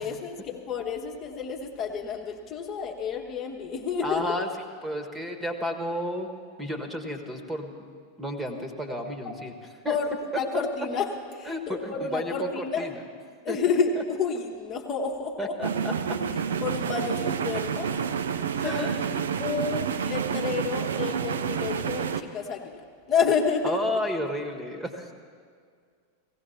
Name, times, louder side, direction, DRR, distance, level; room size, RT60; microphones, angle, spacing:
voice 1, 0.0-4.4 9.9-11.1 11.3-12.9 13.4-15.5 16.6-18.1 18.6-18.9 19.4-24.0, left 5 dB, 30° left, 0 dB, 1.2 m, -30 dB
voice 2, 4.0-4.5 4.8-6.3 6.6-7.7 8.2-9.5 9.8-10.0 10.3-10.6 11.5-13.0 13.5-13.6 13.9-14.0 15.4-16.2 18.5-19.3 23.6-25.1, left 1 dB, 10° right, 6 dB, 1.5 m, -32 dB
sound 1, 15.6-22.2, right 7 dB, 65° right, 0.6 m, -29 dB
17.0 x 16.5 x 4.3 m, 2.1 s
figure-of-eight pair, 90°, 0 cm